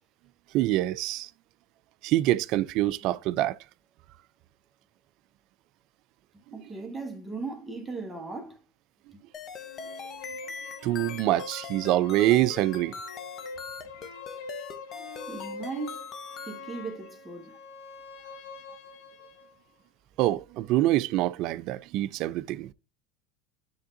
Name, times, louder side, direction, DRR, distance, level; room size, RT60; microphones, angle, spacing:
voice 1, 0.5-1.3 2.0-3.6 10.8-12.9 20.2-22.7, right 15 dB, 55° right, 0.4 m, -25 dB
voice 2, 6.5-8.6 15.3-16.1 16.5-17.5, right 3 dB, 10° right, 1.6 m, -37 dB
sound 1, 9.3-16.6, left 5 dB, 35° left, 0.8 m, -41 dB
sound 2, 9.6-19.5, left 4 dB, 85° left, 2.2 m, -43 dB
10.5 x 3.6 x 2.6 m
supercardioid pair, 120°, 0 cm